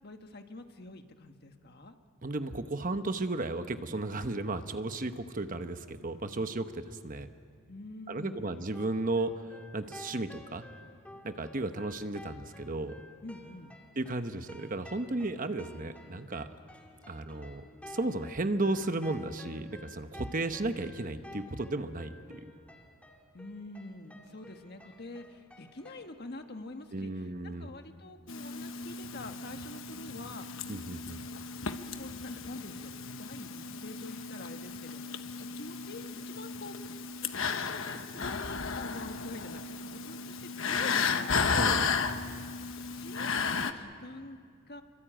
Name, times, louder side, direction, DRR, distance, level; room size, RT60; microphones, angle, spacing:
voice 1, 0.0-2.0 7.7-8.6 13.2-13.8 23.3-30.7 32.0-36.8 37.3-41.6 43.0-44.8, left 2 dB, 50° left, 6 dB, 1.5 m, -46 dB
voice 2, 2.2-7.3 8.1-9.3 9.7-10.6 11.2-13.0 14.0-16.5 17.1-22.5 26.9-27.7 30.7-31.2 41.5-42.0, right 2 dB, 40° right, 9 dB, 1.0 m, -34 dB
sound 1, 8.7-26.1, left 2 dB, 5° left, 2.1 m, -52 dB
sound 2, 28.3-43.7, left 5 dB, 65° left, 1.2 m, -34 dB
27.5 x 24.0 x 9.0 m, 2.1 s
head